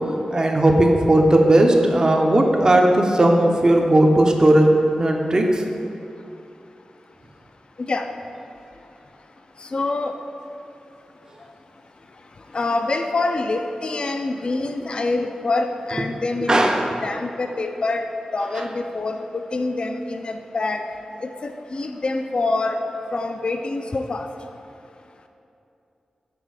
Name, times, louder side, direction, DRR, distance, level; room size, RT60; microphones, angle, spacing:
voice 1, 0.3-4.7 5.0-5.6 16.5-16.9, right 1 dB, 30° right, 2 dB, 0.6 m, -16 dB
voice 2, 9.7-10.1 12.5-16.7 17.0-18.1 18.3-20.8 21.2-22.8 23.1-24.3, left 3 dB, 45° left, 5 dB, 0.4 m, -25 dB
6.0 x 4.3 x 4.8 m, 2.7 s
wide cardioid pair, 100°, 2 cm